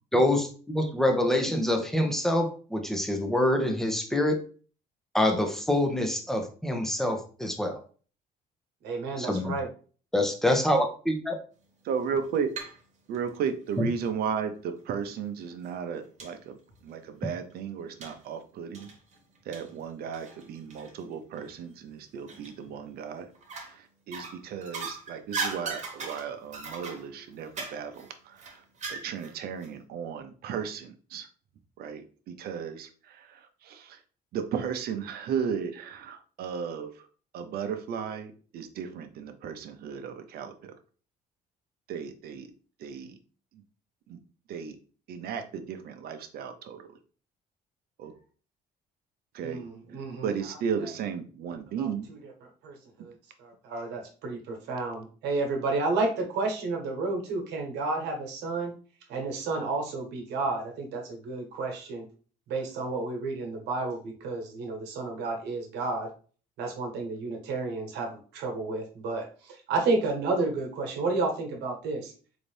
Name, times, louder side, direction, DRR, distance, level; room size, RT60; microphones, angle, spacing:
voice 1, 0.1-4.4 5.1-7.8 9.2-9.5 10.1-11.4 13.8-13.9, left 1 dB, ahead, 3 dB, 0.7 m, -26 dB
voice 2, 8.8-9.7 49.4-50.3 50.8-50.9 51.8-51.9 52.2-52.3 52.6-58.7 59.1-62.1 62.5-66.1 66.6-72.1, right 3 dB, 85° right, 2 dB, 1.2 m, -31 dB
voice 3, 11.9-12.6 13.1-16.6 16.8-18.9 19.5-23.3 23.6-28.6 28.9-31.3 31.8-34.0 34.3-37.1 37.3-40.7 41.9-42.5 42.8-43.2 43.5-43.6 44.1-44.2 44.5-44.8 45.1-46.8 48.0-48.1 49.3-49.6 50.2-52.1, right 7 dB, 65° right, 8 dB, 0.6 m, -35 dB
sound 1, 12.0-12.8 13.1-14.2 14.9-15.0 15.5-15.6 16.2-16.3 16.7-16.8 18.0-18.2 18.7-21.0 21.4-21.5 22.3-22.8 23.3-23.8 24.1-29.3 29.6-29.7, right 4 dB, 45° right, 1.2 m, -38 dB
4.0 x 2.7 x 3.2 m, 0.40 s
cardioid pair, 110°, 17 cm